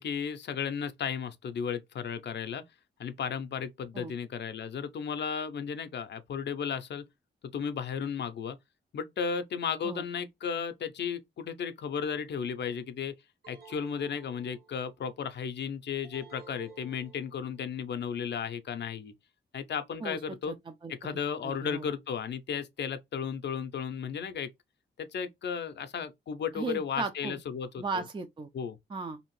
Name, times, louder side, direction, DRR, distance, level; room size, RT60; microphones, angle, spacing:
voice 1, 0.0-2.6 3.0-7.1 7.5-8.6 8.9-13.1 13.5-19.1 19.5-20.5 20.9-24.5 25.0-28.0 28.5-28.8, left 7 dB, 65° left, 0.5 m, -34 dB
sound 1, 13.4-15.0 16.0-17.6, right 4 dB, 55° right, 1.1 m, -53 dB
voice 2, 20.5-21.1 21.4-21.9 26.5-27.4 27.8-28.5 28.9-29.2, right 4 dB, 25° right, 0.4 m, -36 dB
2.7 x 2.5 x 3.0 m
cardioid pair, 55°, 19 cm